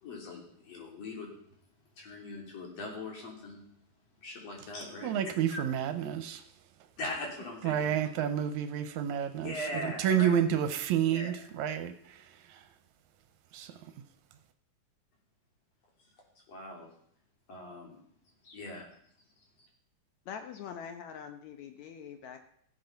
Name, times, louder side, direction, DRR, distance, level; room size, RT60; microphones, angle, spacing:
voice 1, 0.0-1.3 2.0-3.6 4.2-5.1 5.5-5.6 7.0-8.1 9.4-10.3 11.1-11.3 16.5-16.9 17.5-18.0 18.4-18.8, left 2 dB, 55° left, 4.2 m, -40 dB
voice 2, 5.0-6.4 7.6-9.5 9.8-12.6 13.5-13.7, right 9 dB, 80° right, 2.0 m, -30 dB
voice 3, 20.3-22.4, left 7 dB, 70° left, 2.1 m, -43 dB
15.0 x 8.0 x 5.7 m
omnidirectional pair, 3.5 m